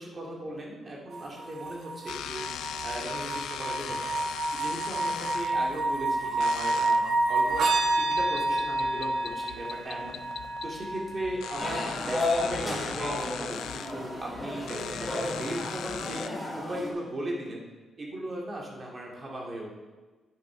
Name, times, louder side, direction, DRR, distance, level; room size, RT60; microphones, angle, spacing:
voice 1, 0.0-2.5 2.8-4.1 4.5-7.7 8.0-17.6 18.0-19.7, right 1 dB, 30° right, -2 dB, 2.1 m, -38 dB
sound 1, 1.1-13.1 14.5-14.6, right 2 dB, 60° right, 1.2 m, -29 dB
sound 2, 2.1-16.3, left 10 dB, 90° left, 0.4 m, -40 dB
sound 3, 11.6-16.9, left 2 dB, 5° left, 2.7 m, -33 dB
10.5 x 10.5 x 3.8 m, 1.3 s
cardioid pair, 155°, 0 cm